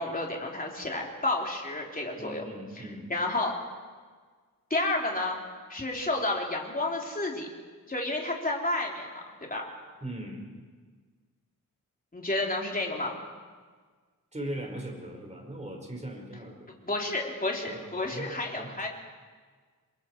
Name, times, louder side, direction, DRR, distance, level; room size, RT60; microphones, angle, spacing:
voice 1, 0.0-2.4 3.1-3.6 4.7-5.4 5.7-7.5 7.9-9.7 12.1-13.2 16.8-18.9, left 2 dB, 25° left, -1 dB, 3.7 m, -31 dB
voice 2, 2.2-3.1 10.0-10.5 14.3-16.7 17.6-18.7, right 1 dB, 20° right, 1 dB, 5.1 m, -39 dB
28.5 x 22.5 x 4.6 m, 1.5 s
wide cardioid pair, 115°, 34 cm